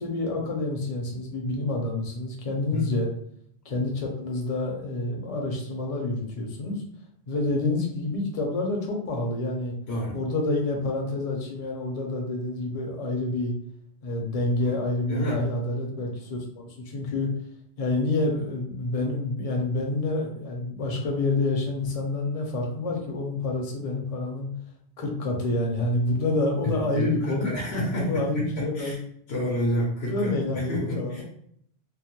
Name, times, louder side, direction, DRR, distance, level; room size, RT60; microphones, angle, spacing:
voice 1, 0.0-3.1 3.6-6.8 7.3-9.7 10.1-13.5 14.0-17.3 17.8-24.5 25.0-27.5 27.9-29.0 30.1-31.2, left 2 dB, 45° left, 0 dB, 0.6 m, -28 dB
voice 2, 9.9-10.2 14.7-14.8 15.1-15.4 26.6-29.0 29.3-31.2, equal, 75° left, -3 dB, 0.9 m, -29 dB
2.3 x 2.1 x 2.9 m, 0.67 s
omnidirectional pair, 1.1 m